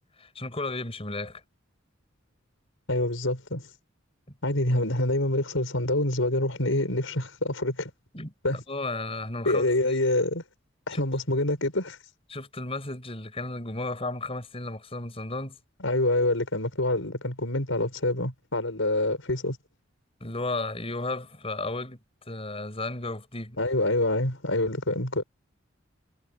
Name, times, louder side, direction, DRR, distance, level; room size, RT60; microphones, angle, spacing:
voice 1, 0.2-1.4 4.7-4.8 8.1-8.3 8.7-9.9 10.9-11.0 12.3-15.6 20.2-22.0 22.3-23.6, left 2 dB, 30° left, 6.0 m, -34 dB
voice 2, 2.9-3.7 4.4-7.9 8.4-8.6 9.4-10.4 10.9-12.0 15.8-19.6 23.6-25.2, left 1 dB, 75° left, 5.9 m, -26 dB
head